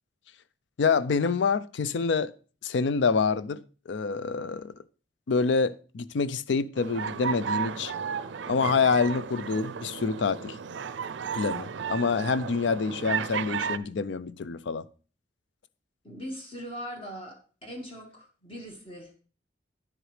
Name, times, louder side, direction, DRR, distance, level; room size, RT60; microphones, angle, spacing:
voice 1, 0.8-2.3 2.6-3.6 3.9-4.7 5.3-7.9 8.5-10.6 11.3-14.9, left 5 dB, 75° left, 0.4 m, -26 dB
sound 1, 6.8-13.8, right 7 dB, 85° right, 0.5 m, -33 dB
voice 2, 16.0-19.1, equal, 30° left, 1.5 m, -40 dB
10.0 x 7.8 x 3.2 m
head